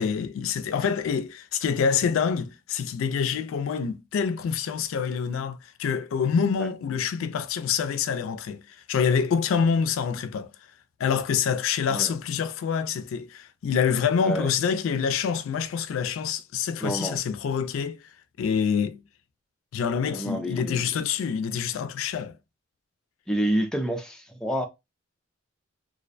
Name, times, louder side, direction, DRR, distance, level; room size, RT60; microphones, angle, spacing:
voice 1, 0.0-10.5 11.0-18.0 18.4-19.0 19.7-22.4, left 6 dB, 90° left, 0.3 m, -26 dB
voice 2, 16.8-17.2 20.1-20.9 23.3-24.7, right 1 dB, 5° left, 0.3 m, -28 dB
2.4 x 2.1 x 2.5 m
head